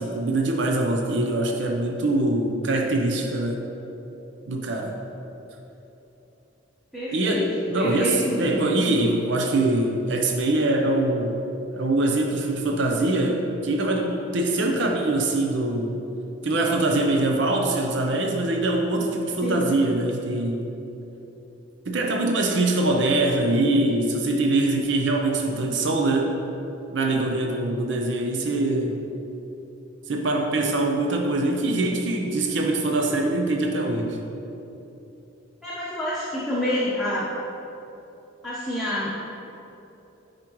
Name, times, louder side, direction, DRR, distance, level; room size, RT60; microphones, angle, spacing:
voice 1, 0.0-3.6 4.5-4.9 7.1-11.4 11.7-16.0 16.4-20.7 21.9-26.4 26.9-29.0 30.1-34.2, right 2 dB, 70° right, 2 dB, 0.6 m, -23 dB
voice 2, 6.9-7.4 7.7-8.7 19.4-19.6 35.6-37.3 38.4-39.1, left 1 dB, ahead, -10 dB, 1.0 m, -27 dB
9.3 x 5.0 x 3.0 m, 3.0 s
head